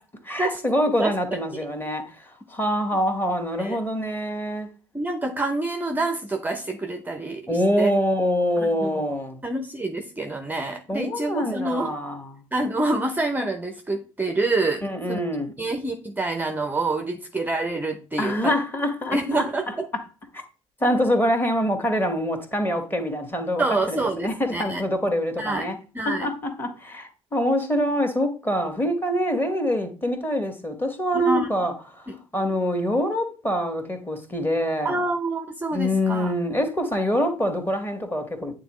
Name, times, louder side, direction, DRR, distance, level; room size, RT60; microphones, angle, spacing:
voice 1, 0.2-4.7 7.5-9.4 10.9-12.4 14.8-15.5 18.2-19.5 20.8-25.8 26.1-31.7 32.3-35.0 35.7-38.5, equal, 10° left, 1.6 m, -25 dB
voice 2, 4.9-7.9 8.6-9.0 9.4-11.9 12.5-15.2 15.6-18.5 19.1-19.9 23.6-24.8 25.4-25.7 25.9-26.3 31.1-31.5 32.1-32.2 34.8-36.3, right 2 dB, 10° right, 0.7 m, -27 dB
9.1 x 3.8 x 3.1 m
hypercardioid pair, 60°, 17 cm